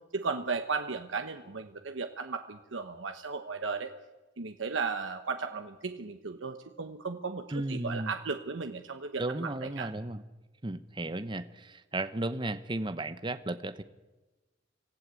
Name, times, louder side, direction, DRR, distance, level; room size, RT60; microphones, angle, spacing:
voice 1, 0.1-3.9 4.4-9.9, right 4 dB, 85° right, 7 dB, 1.1 m, -35 dB
voice 2, 7.5-8.1 9.2-10.2 10.6-13.8, right 2 dB, 25° right, 12 dB, 0.9 m, -34 dB
25.0 x 14.5 x 8.3 m, 1.2 s
head